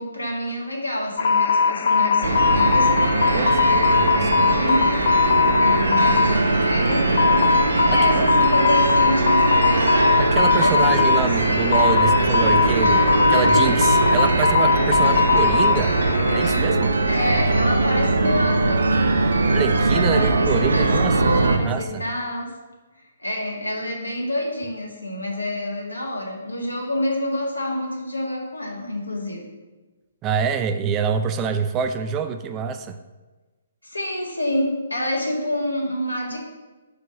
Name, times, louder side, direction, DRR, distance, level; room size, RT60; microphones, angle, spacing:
voice 1, 0.0-4.8 5.6-7.5 7.8-10.2 10.5-11.2 11.5-12.1 15.0-15.3 17.1-19.5 19.9-22.6 23.2-29.4 33.8-36.4, left 1 dB, 80° left, -1 dB, 1.8 m, -28 dB
sound 1, 1.2-16.6, left 5 dB, 50° left, 0.4 m, -20 dB
sound 2, 2.2-21.6, right 3 dB, 65° right, 0.6 m, -21 dB
voice 2, 3.3-4.3 7.9-8.3 10.2-15.9 16.3-17.0 19.5-22.0 30.2-33.0, right 7 dB, 20° right, 8 dB, 0.4 m, -26 dB
5.6 x 4.8 x 6.1 m, 1.2 s
figure-of-eight pair, 130°, 0 cm